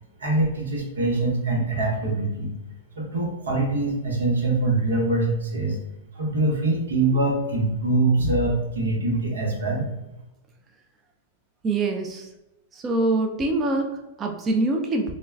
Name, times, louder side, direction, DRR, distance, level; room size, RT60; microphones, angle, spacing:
voice 1, 0.2-2.5 3.0-5.8 6.1-9.8, right 2 dB, 85° right, -1 dB, 0.9 m, -23 dB
voice 2, 11.6-12.3 12.7-15.1, right 2 dB, 25° right, 3 dB, 0.3 m, -25 dB
2.2 x 2.2 x 3.3 m, 0.98 s
hypercardioid pair, 120°, 0 cm